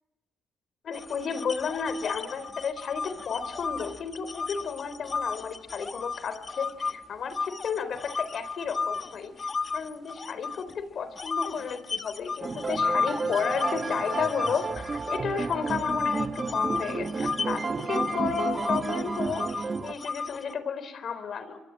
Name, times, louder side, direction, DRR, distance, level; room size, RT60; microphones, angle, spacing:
voice 1, 0.8-21.6, left 6 dB, 55° left, 13 dB, 3.9 m, -33 dB
sound 1, 0.9-6.9 7.3-10.7 11.2-20.5, left 4 dB, 35° left, 1.5 m, -33 dB
sound 2, 12.4-19.9, right 4 dB, 35° right, 1.2 m, -32 dB
27.5 x 23.5 x 8.8 m, 0.96 s
cardioid pair, 90°, 0 cm